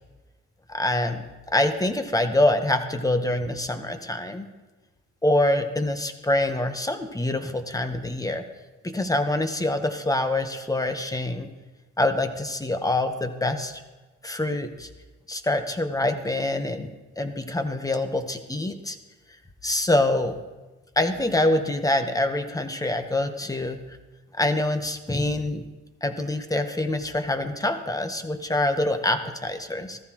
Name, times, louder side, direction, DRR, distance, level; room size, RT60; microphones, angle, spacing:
voice 1, 0.7-4.5 5.2-8.4 8.8-11.5 12.0-13.8 14.2-14.9 15.3-16.9 17.2-19.0 19.6-20.4 21.0-23.8 24.4-25.6 26.0-30.0, left 1 dB, 10° left, 7 dB, 1.1 m, -25 dB
15.0 x 14.0 x 3.0 m, 1.2 s
cardioid pair, 90°, 30 cm